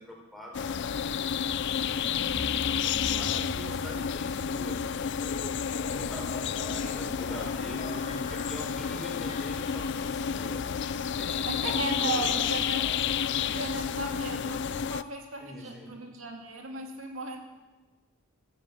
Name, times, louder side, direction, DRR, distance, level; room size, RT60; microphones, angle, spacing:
voice 1, 0.0-2.1 3.1-5.3 5.9-10.6 11.1-12.5 15.4-15.9, equal, ahead, -1 dB, 4.1 m, -44 dB
sound 1, 0.5-15.0, left 7 dB, 60° left, 0.4 m, -30 dB
sound 2, 1.6-14.3, left 1 dB, 30° left, 2.3 m, -45 dB
voice 2, 6.1-6.7 11.4-12.8 13.1-17.4, right 2 dB, 70° right, 2 dB, 2.3 m, -36 dB
13.5 x 13.0 x 8.4 m, 1.3 s
head